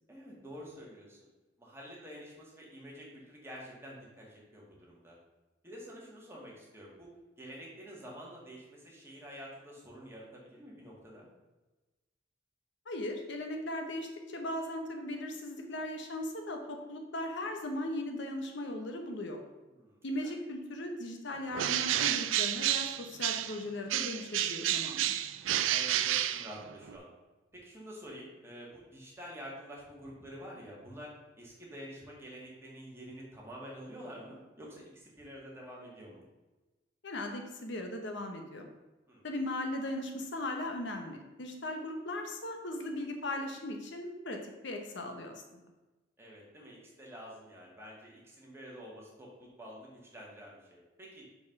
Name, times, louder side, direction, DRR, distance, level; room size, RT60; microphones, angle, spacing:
voice 1, 0.1-1.3 1.6-5.2 5.6-11.3 19.7-20.4 25.6-27.1 27.5-36.2 39.1-39.2 46.2-51.3, equal, 15° right, -4 dB, 1.9 m, -48 dB
voice 2, 12.9-19.4 20.0-25.1 37.0-38.7 39.2-45.6, left 1 dB, 65° left, 4 dB, 1.0 m, -38 dB
Bird, 21.5-23.6 23.9-27.0, right 11 dB, 85° right, 0.4 m, -30 dB
5.4 x 4.7 x 5.9 m, 1.1 s
head